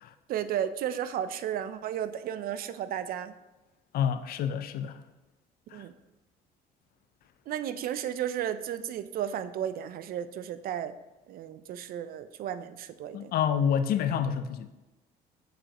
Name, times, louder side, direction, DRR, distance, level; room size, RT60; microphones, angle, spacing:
voice 1, 0.3-3.3 5.7-5.9 7.5-10.9 11.3-13.3, right 10 dB, 60° right, 0.4 m, -33 dB
voice 2, 3.9-5.0 5.7-5.8 13.1-14.7, left 8 dB, 65° left, 0.5 m, -28 dB
7.3 x 4.9 x 2.9 m
cardioid pair, 110°, 17 cm